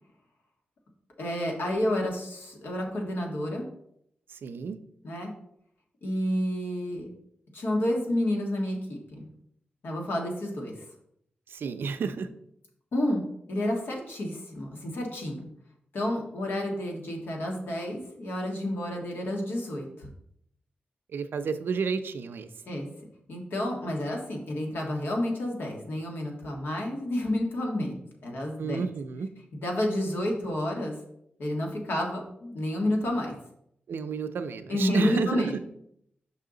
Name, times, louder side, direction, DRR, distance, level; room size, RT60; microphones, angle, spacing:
voice 1, 1.2-3.7 5.0-5.3 6.0-7.1 7.5-9.2 9.8-10.8 12.9-15.5 15.9-20.1 22.6-22.9 23.3-28.8 29.5-30.9 31.4-33.3 34.7-35.6, left 1 dB, 80° left, 0 dB, 1.6 m, -30 dB
voice 2, 4.3-4.8 11.5-12.3 21.1-22.5 28.6-29.3 33.9-35.6, right 5 dB, 80° right, 9 dB, 0.5 m, -31 dB
5.6 x 5.5 x 3.8 m, 0.73 s
wide cardioid pair, 105°, 4 cm